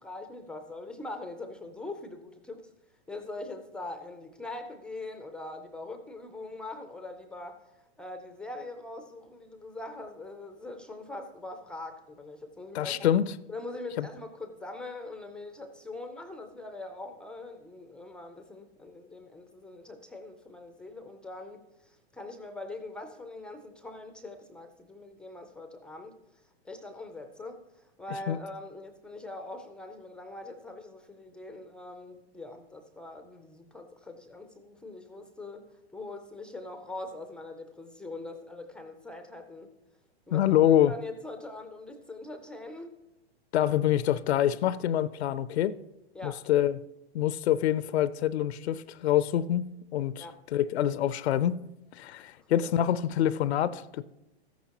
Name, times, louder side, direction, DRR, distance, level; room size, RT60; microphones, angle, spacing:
voice 1, 0.0-2.7 3.1-13.1 13.5-39.7 40.3-40.6 40.9-42.9 46.1-46.4 50.2-50.4 52.4-52.7, left 2 dB, 5° left, 0.3 m, -42 dB
voice 2, 12.7-13.2 14.0-14.1 28.3-28.4 40.3-40.9 43.5-45.7 46.2-46.8 47.1-50.2 50.5-51.6 51.9-54.0, left 11 dB, 75° left, 0.5 m, -26 dB
13.5 x 10.0 x 2.9 m
hypercardioid pair, 130°, 32 cm